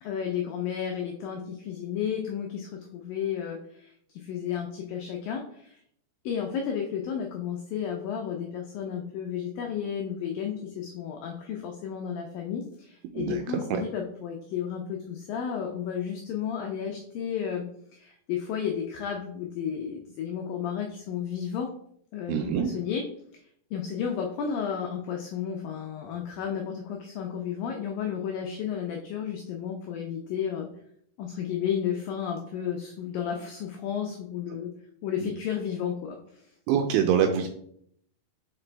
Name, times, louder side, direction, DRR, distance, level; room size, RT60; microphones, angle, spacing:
voice 1, 0.0-5.8 6.2-17.7 17.9-21.7 22.1-23.0 23.7-30.7 31.2-34.7 35.0-36.2, left 8 dB, 80° left, 2 dB, 2.0 m, -32 dB
voice 2, 13.1-13.8 22.3-22.7 35.2-35.3 36.7-37.5, right 8 dB, 80° right, 5 dB, 2.5 m, -25 dB
6.0 x 4.8 x 3.3 m, 0.67 s
omnidirectional pair, 4.8 m